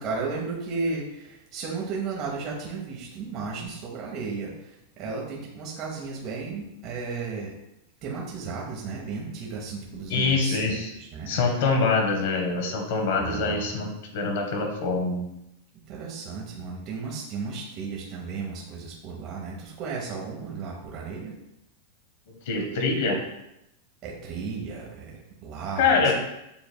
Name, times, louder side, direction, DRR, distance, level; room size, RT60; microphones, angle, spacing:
voice 1, 0.0-7.5 8.0-11.4 13.2-13.8 15.9-21.3 24.0-26.1, right 4 dB, 35° right, -2 dB, 0.9 m, -34 dB
voice 2, 10.1-10.9 11.3-15.2 22.5-23.2 25.8-26.1, left 4 dB, 65° left, 3 dB, 1.0 m, -24 dB
6.9 x 3.4 x 2.2 m, 0.85 s
supercardioid pair, 150°, 0 cm